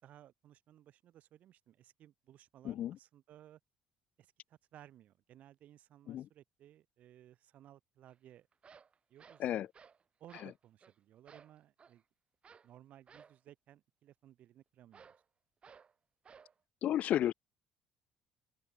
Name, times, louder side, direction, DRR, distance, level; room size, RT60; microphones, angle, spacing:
voice 1, 0.0-3.6 4.2-8.5 9.1-9.7 10.2-12.0 12.6-15.1, right 12 dB, 60° right, 4.2 m, -59 dB
voice 2, 2.6-3.0 6.1-6.3 9.4-9.7 16.8-17.3, left 12 dB, 60° left, 0.5 m, -32 dB
sound 1, 8.1-8.2 8.5-10.0 10.3-10.5 10.8-10.9 11.3-12.0 12.4-12.7 13.1-13.4 14.9-15.2 15.6-15.9 16.2-16.5, right 6 dB, 40° right, 5.0 m, -59 dB
open air
hypercardioid pair, 55°, 3 cm